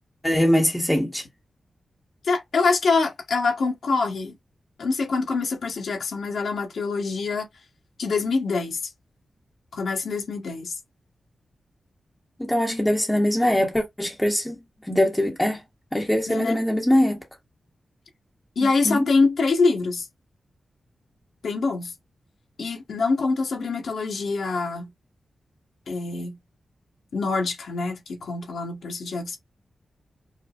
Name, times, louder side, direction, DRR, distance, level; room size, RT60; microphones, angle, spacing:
voice 1, 0.2-1.2 12.4-14.6 14.9-15.6 15.9-17.2 18.8-19.0, left 1 dB, 10° left, 0.8 m, -22 dB
voice 2, 2.2-4.3 4.8-7.4 8.0-8.8 9.7-10.7 16.3-16.6 18.5-20.1 21.4-21.9 22.6-24.9 25.9-26.4 27.1-29.4, left 4 dB, 85° left, 1.3 m, -25 dB
4.8 x 2.1 x 2.4 m
wide cardioid pair, 120°, 0 cm